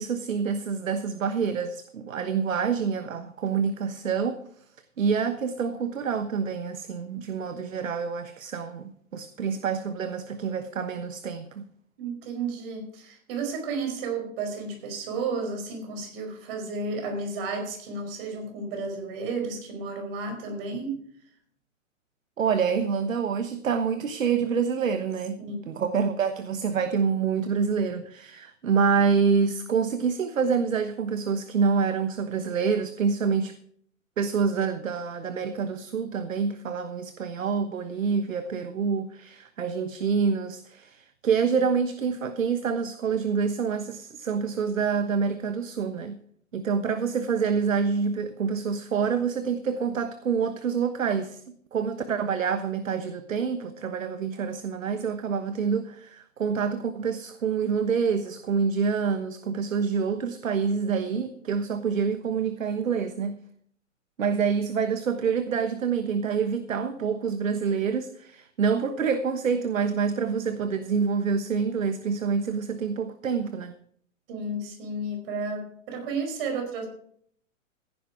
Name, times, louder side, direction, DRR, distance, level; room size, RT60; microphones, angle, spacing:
voice 1, 0.0-4.6 5.0-11.6 22.4-33.6 34.2-46.2 46.5-51.4 51.7-63.4 64.2-73.8, right 6 dB, 80° right, 1.3 m, -27 dB
voice 2, 12.0-21.0 25.4-25.7 74.3-76.9, right 3 dB, 45° right, 5.0 m, -32 dB
15.5 x 11.0 x 4.8 m
hypercardioid pair, 125°, 39 cm